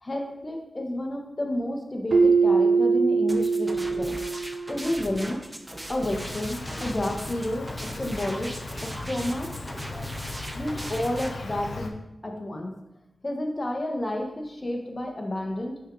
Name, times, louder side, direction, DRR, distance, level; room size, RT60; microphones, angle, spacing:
voice 1, 0.0-4.2 4.7-5.4 5.9-8.5 8.8-9.5 10.5-11.9 12.2-12.8 13.2-15.8, left 1 dB, 30° left, 1 dB, 1.2 m, -30 dB
Keyboard (musical), 2.1-4.9, right 4 dB, 80° right, 0.8 m, -22 dB
sound 1, 3.3-11.3, right 1 dB, 15° right, 0.7 m, -38 dB
Insect, 6.1-11.9, left 3 dB, 85° left, 0.7 m, -37 dB
6.2 x 6.0 x 3.9 m, 0.90 s
wide cardioid pair, 80°, 0 cm